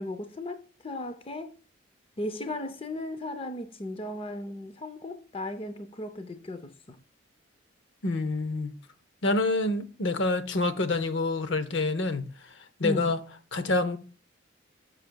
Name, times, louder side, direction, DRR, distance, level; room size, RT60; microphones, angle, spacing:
voice 1, 0.0-1.5 2.2-7.0 12.8-13.2, left 1 dB, 25° left, 0.6 m, -36 dB
voice 2, 8.0-8.7 9.2-12.3 12.8-13.2 13.5-14.0, left 2 dB, 65° left, 0.8 m, -27 dB
10.5 x 6.5 x 2.3 m
head